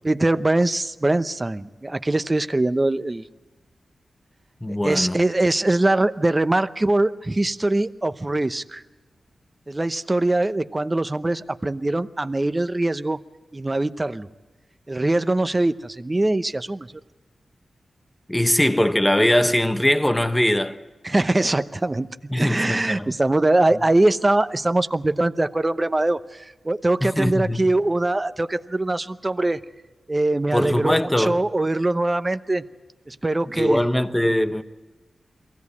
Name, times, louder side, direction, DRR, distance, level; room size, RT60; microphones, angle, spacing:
voice 1, 0.0-3.2 4.7-8.8 9.7-13.2 13.5-14.3 14.9-16.9 21.0-29.6 30.1-30.9 31.2-32.6 33.1-33.8, right 2 dB, 25° right, 0.8 m, -22 dB
voice 2, 4.6-5.2 18.3-20.8 22.3-23.1 27.0-27.6 30.5-31.4 33.5-34.6, left 1 dB, 10° left, 1.2 m, -21 dB
23.0 x 16.5 x 8.5 m
cardioid pair, 65°, 0 cm